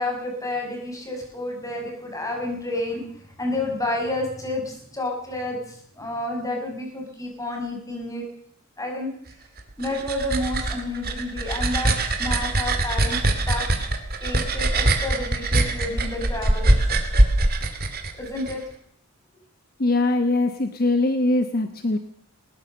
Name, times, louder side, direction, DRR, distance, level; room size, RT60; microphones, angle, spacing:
voice 1, 0.0-8.2 8.8-9.1 9.8-13.2 13.5-13.7 14.2-16.7 18.2-18.6, left 1 dB, 15° left, 1 dB, 5.6 m, -30 dB
sound 1, 9.6-18.5, right 2 dB, 45° right, 2.5 m, -22 dB
voice 2, 19.8-22.0, left 2 dB, 45° left, 9 dB, 1.1 m, -22 dB
20.0 x 20.0 x 6.7 m, 0.65 s
head